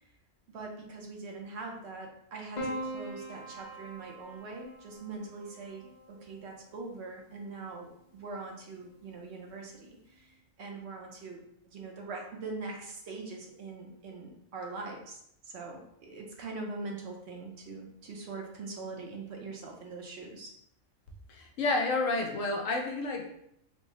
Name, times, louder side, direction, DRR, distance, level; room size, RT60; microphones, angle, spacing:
voice 1, 0.5-20.5, right 3 dB, 65° right, 0 dB, 0.9 m, -42 dB
Piano, 2.6-7.0 8.2-8.9, right 1 dB, 40° left, 0.8 m, -42 dB
voice 2, 21.3-23.3, left 3 dB, 80° left, 2 dB, 1.0 m, -30 dB
3.5 x 2.0 x 3.7 m, 0.74 s
omnidirectional pair, 1.3 m